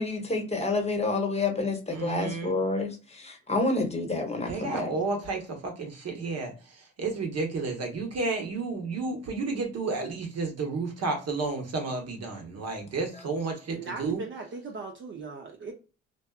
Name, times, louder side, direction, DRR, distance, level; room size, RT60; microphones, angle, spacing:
voice 1, 0.0-4.9, left 3 dB, 20° left, 0.8 m, -29 dB
voice 2, 1.9-2.6 4.5-14.2, right 3 dB, 60° right, 0.9 m, -32 dB
voice 3, 13.7-15.7, right 4 dB, 40° right, 0.5 m, -38 dB
2.5 x 2.3 x 2.2 m
supercardioid pair, 55°, 29 cm